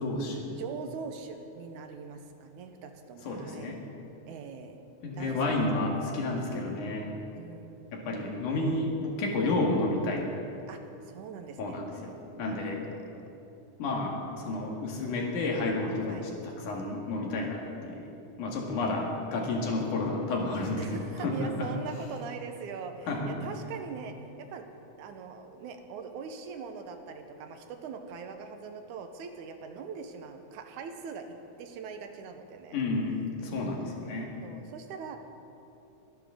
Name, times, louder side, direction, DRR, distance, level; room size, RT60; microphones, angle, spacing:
voice 1, 0.0-0.5 3.2-3.8 5.0-7.1 7.9-10.3 11.6-12.1 12.4-12.8 13.8-18.1 18.4-21.7 23.1-23.5 32.7-33.1 33.4-34.3, left 2 dB, 85° left, -1 dB, 3.3 m, -31 dB
voice 2, 0.6-3.8 4.3-4.8 5.2-5.4 7.4-7.9 10.7-11.8 12.3-13.1 16.1-16.3 20.8-24.7 25.0-32.8 33.4-33.9 34.4-35.2, right 5 dB, 85° right, 6 dB, 2.4 m, -42 dB
24.0 x 10.5 x 3.8 m, 2.8 s
omnidirectional pair, 3.5 m